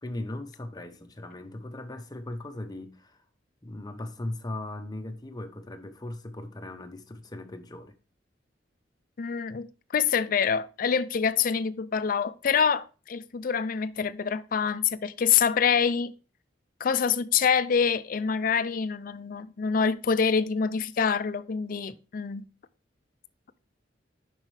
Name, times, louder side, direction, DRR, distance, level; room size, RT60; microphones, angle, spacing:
voice 1, 0.0-3.2 3.6-7.9, left 1 dB, 20° left, 0.8 m, -38 dB
voice 2, 9.2-9.7 9.9-16.1 16.8-22.4, left 6 dB, 50° left, 0.4 m, -26 dB
7.3 x 5.4 x 3.2 m
head